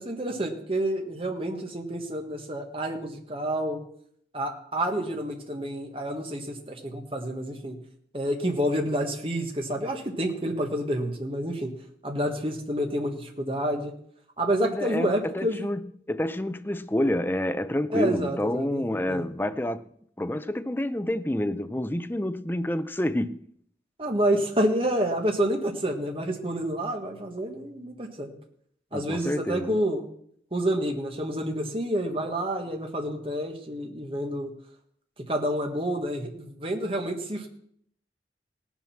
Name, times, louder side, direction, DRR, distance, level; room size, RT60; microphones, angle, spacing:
voice 1, 0.0-3.8 4.3-7.8 8.1-11.7 12.0-13.9 14.4-15.7 17.9-19.2 24.0-28.3 28.9-30.0 30.5-34.5 35.3-37.5, right 1 dB, 30° right, 1.5 m, -28 dB
voice 2, 14.6-19.8 20.2-23.5 28.9-29.8, left 1 dB, 10° left, 0.5 m, -28 dB
18.0 x 7.3 x 5.9 m
head